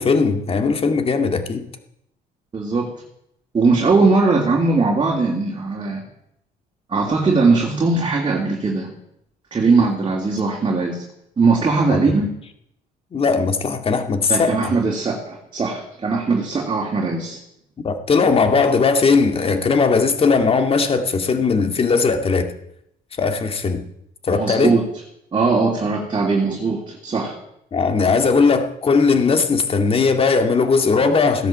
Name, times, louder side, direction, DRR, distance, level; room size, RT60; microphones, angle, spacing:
voice 1, 0.0-1.7 9.8-9.9 11.9-12.0 13.1-14.7 17.8-22.5 23.2-23.8 24.3-24.7 27.7-31.5, left 4 dB, 35° left, 7 dB, 2.2 m, -18 dB
voice 2, 2.5-2.9 3.5-6.1 6.9-8.9 9.5-11.0 11.4-12.3 14.3-17.4 24.3-24.8 25.3-27.4, right 4 dB, 30° right, 0 dB, 3.0 m, -19 dB
16.5 x 10.5 x 7.6 m, 0.76 s
cardioid pair, 110°, 17 cm